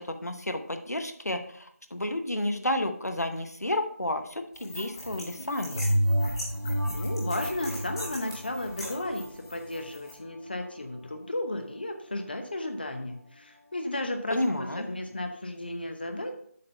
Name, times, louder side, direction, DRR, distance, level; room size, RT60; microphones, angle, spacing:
voice 1, 0.0-5.8 14.3-14.9, left 1 dB, 85° left, 7 dB, 1.0 m, -31 dB
sound 1, 4.5-10.1, left 1 dB, 15° left, 1.5 m, -41 dB
sound 2, 5.7-10.7 11.2-11.3, right 1 dB, 85° right, 1.7 m, -30 dB
voice 2, 6.9-16.3, left 1 dB, 40° left, 6 dB, 0.8 m, -34 dB
7.6 x 3.8 x 5.6 m, 0.63 s
figure-of-eight pair, 170°, 8 cm